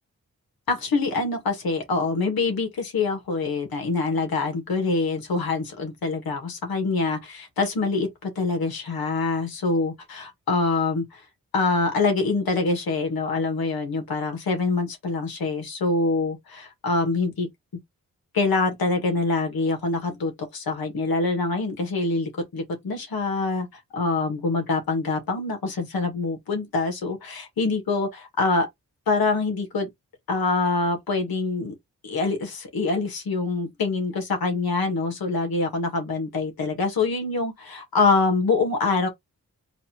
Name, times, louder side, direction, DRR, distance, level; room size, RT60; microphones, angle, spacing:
voice 1, 0.7-11.2 11.5-17.5 18.3-28.7 29.1-29.9 30.3-31.7 32.0-39.1, left 3 dB, 85° left, 1.9 m, -25 dB
4.1 x 2.7 x 4.4 m
cardioid pair, 45°, 35 cm